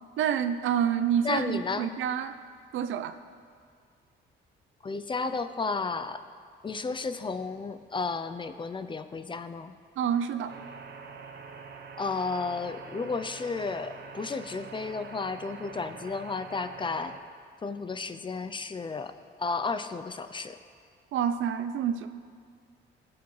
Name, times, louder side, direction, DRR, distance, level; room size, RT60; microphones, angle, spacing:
voice 1, 0.2-2.3 2.7-3.2 10.0-10.5 21.1-22.1, right 8 dB, 75° right, 10 dB, 0.5 m, -28 dB
voice 2, 1.2-1.9 4.8-6.2 6.6-9.7 12.0-17.1 17.6-20.6, left 4 dB, 25° left, 10 dB, 0.5 m, -33 dB
sound 1, 10.5-17.2, right 5 dB, 60° right, 1.0 m, -45 dB
17.0 x 6.1 x 3.2 m, 2.1 s
cardioid pair, 90°, 20 cm